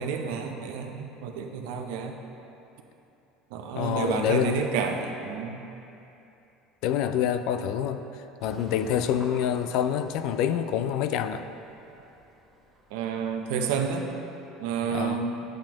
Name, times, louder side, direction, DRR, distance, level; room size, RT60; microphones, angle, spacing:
voice 1, 0.0-2.1 3.5-5.6 12.9-14.1 14.6-15.4, right 6 dB, 75° right, 4 dB, 0.7 m, -30 dB
voice 2, 3.8-4.6 6.8-8.0 8.4-11.5 14.9-15.2, left 9 dB, 65° left, 10 dB, 0.4 m, -27 dB
sound 1, 8.4-14.1, equal, 10° right, 1.7 m, -48 dB
8.6 x 7.6 x 3.0 m, 2.9 s
supercardioid pair, 90°, 0 cm